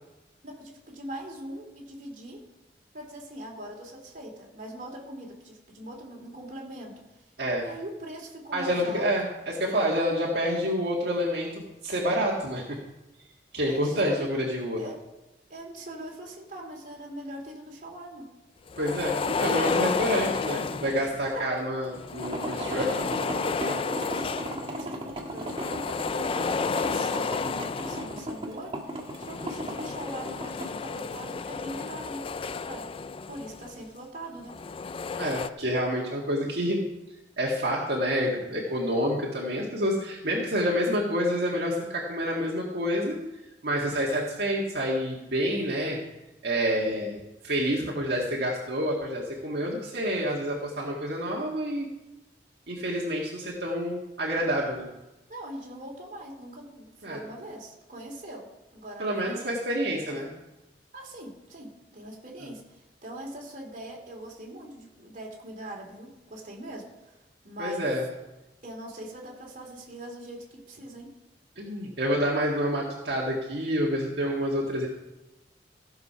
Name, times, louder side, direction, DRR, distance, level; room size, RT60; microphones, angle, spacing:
voice 1, 0.4-2.4 2.9-7.2 7.6-9.1 13.7-14.3 14.8-15.0 15.5-18.3 19.7-19.8 21.2-21.5 23.6-32.9 33.3-34.6 39.6-39.7 55.3-58.5 58.7-59.5 60.0-60.2 60.9-67.2 67.4-67.9 68.6-71.1, right 1 dB, 45° right, -1 dB, 2.8 m, -41 dB
voice 2, 8.5-12.8 13.5-14.9 18.8-22.9 35.2-36.8 37.4-43.2 43.6-46.0 46.4-51.9 52.7-54.9 57.0-57.2 59.0-60.3 67.6-68.1 71.6-74.9, equal, 65° right, -3 dB, 1.8 m, -28 dB
sound 1, 18.7-21.3 21.9-24.8 25.2-28.4 29.0-33.8 34.4-35.5, left 5 dB, 30° left, 0.3 m, -32 dB
sound 2, 22.2-30.7, right 1 dB, 30° right, 1.6 m, -36 dB
15.5 x 6.8 x 5.6 m, 1.0 s
head